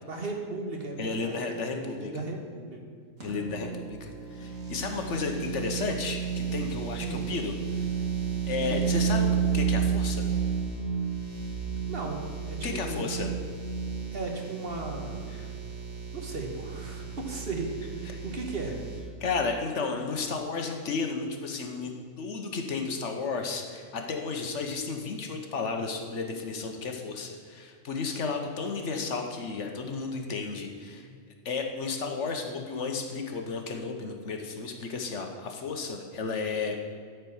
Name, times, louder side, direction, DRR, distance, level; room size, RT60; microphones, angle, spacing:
voice 1, 0.0-2.8 7.0-7.2 8.7-8.9 11.9-12.2 12.5-13.1 14.1-15.2 16.1-18.8, right 3 dB, 50° right, 2 dB, 1.4 m, -36 dB
voice 2, 1.0-2.2 3.2-7.5 8.5-10.2 12.6-13.3 15.3-15.5 19.2-21.9 22.2-31.1 31.4-36.8, left 4 dB, 65° left, 4 dB, 1.3 m, -33 dB
sound 1, 3.2-19.0, right 6 dB, 90° right, 2.3 m, -32 dB
12.5 x 4.5 x 7.0 m, 2.1 s
omnidirectional pair, 1.4 m